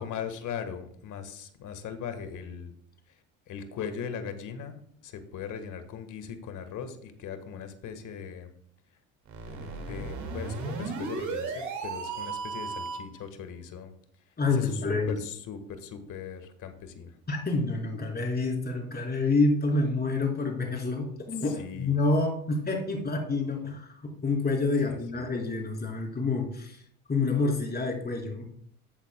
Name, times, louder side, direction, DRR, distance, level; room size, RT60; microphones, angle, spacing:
voice 1, 0.0-2.7 3.1-8.5 8.9-9.0 9.5-13.9 14.2-17.2 21.4-22.0 22.9-23.0 24.9-25.2, left 7 dB, 60° left, 9 dB, 1.6 m, -39 dB
sound 1, 9.3-13.2, right 4 dB, 55° right, 2.2 m, -35 dB
voice 2, 14.4-15.1 17.3-26.8 27.1-28.4, left 3 dB, 25° left, 0 dB, 4.0 m, -28 dB
14.0 x 8.2 x 2.2 m, 0.63 s
supercardioid pair, 75°, 35 cm